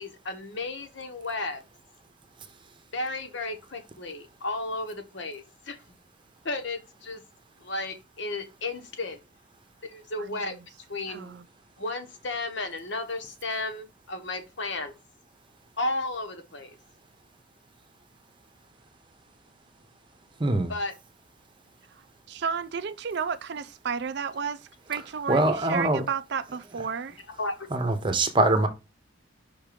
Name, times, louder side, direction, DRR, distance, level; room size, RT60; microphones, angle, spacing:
voice 1, 0.0-1.6 2.9-6.0 6.4-7.2 7.6-9.2 9.8-10.5 10.9-11.4 11.8-14.9 15.8-16.8 20.7-20.9 27.4-27.7, left 2 dB, 60° left, 1.1 m, -33 dB
voice 2, 10.2-10.6 11.1-11.5 22.3-27.2, right 6 dB, 55° right, 0.4 m, -32 dB
voice 3, 20.4-20.7 25.3-26.0 27.7-28.7, right 2 dB, 25° right, 0.9 m, -23 dB
5.4 x 3.6 x 5.1 m
head